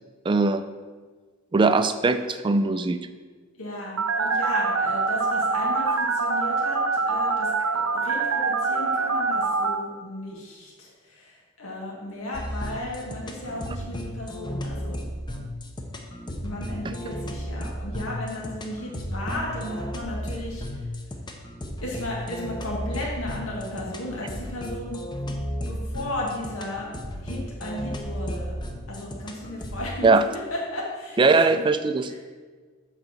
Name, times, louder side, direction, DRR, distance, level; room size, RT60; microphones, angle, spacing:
voice 1, 0.3-0.6 1.5-3.0 30.0-30.2 31.2-32.2, right 3 dB, 25° right, 11 dB, 0.3 m, -20 dB
voice 2, 3.6-15.1 16.4-20.9 21.8-25.0 25.2-25.3 25.6-26.9 27.2-28.6 28.9-31.6 32.1-32.2, left 1 dB, 85° left, -3 dB, 1.6 m, -35 dB
Telephone, 4.0-9.7, right 4 dB, 70° right, 0.6 m, -24 dB
sound 1, 12.3-29.9, equal, 20° left, 0.7 m, -34 dB
7.8 x 4.1 x 6.3 m, 1.5 s
head